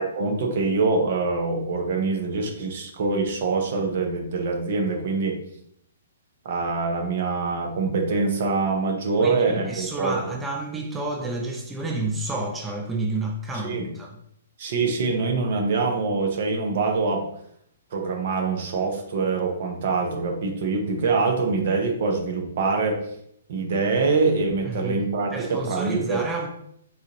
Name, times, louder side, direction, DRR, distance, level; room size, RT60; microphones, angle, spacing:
voice 1, 0.0-5.4 6.4-10.2 13.5-13.9 14.6-17.3 17.9-23.0 23.5-26.2, right 4 dB, 55° right, 3 dB, 0.7 m, -24 dB
voice 2, 9.2-14.2 24.7-25.0 25.3-26.5, right 2 dB, 10° right, 1 dB, 0.5 m, -30 dB
4.0 x 2.5 x 2.9 m, 0.72 s
hypercardioid pair, 135°, 0 cm